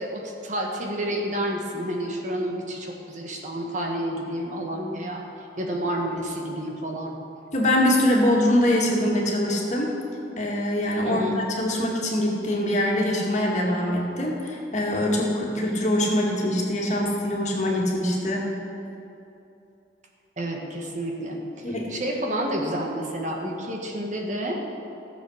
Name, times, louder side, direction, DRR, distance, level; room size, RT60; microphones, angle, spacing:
voice 1, 0.0-5.2 5.6-7.2 11.0-11.4 20.4-24.6, equal, 45° right, 1 dB, 1.5 m, -30 dB
voice 2, 7.5-9.9 10.4-18.5 21.6-21.9, left 1 dB, 40° left, -2 dB, 2.1 m, -23 dB
15.0 x 7.3 x 6.5 m, 2.8 s
head